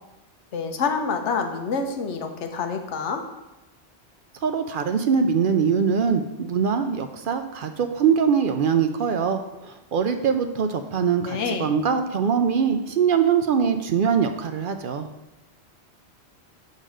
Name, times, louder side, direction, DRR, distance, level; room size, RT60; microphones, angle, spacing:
voice 1, 0.5-3.2 11.3-11.7, left 5 dB, 90° left, 6 dB, 1.2 m, -27 dB
voice 2, 4.4-15.1, right 6 dB, 60° right, 8 dB, 0.6 m, -22 dB
6.6 x 4.1 x 6.1 m, 0.99 s
omnidirectional pair, 1.2 m